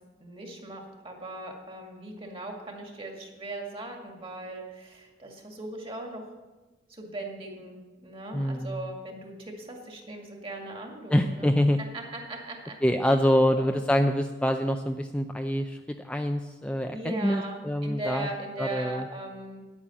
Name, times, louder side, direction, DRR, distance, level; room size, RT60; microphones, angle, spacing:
voice 1, 0.2-6.2 6.9-11.5 11.9-12.8 13.4-13.7 16.9-19.6, right 2 dB, 30° right, 2 dB, 2.1 m, -39 dB
voice 2, 8.3-8.8 11.1-11.8 12.8-15.8 16.0-18.3 18.6-19.1, equal, 5° left, 5 dB, 0.4 m, -25 dB
9.9 x 8.8 x 7.2 m, 1.2 s
head